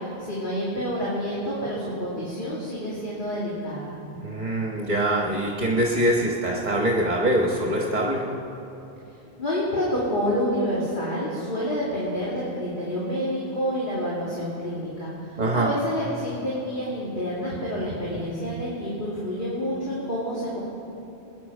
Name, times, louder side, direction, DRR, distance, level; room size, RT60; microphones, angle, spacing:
voice 1, 0.0-4.0 9.4-20.6, equal, 50° left, -8 dB, 2.8 m, -28 dB
voice 2, 4.2-8.3 15.4-15.7, right 1 dB, 40° right, -1 dB, 1.4 m, -23 dB
22.0 x 9.8 x 5.5 m, 3.0 s
omnidirectional pair, 1.1 m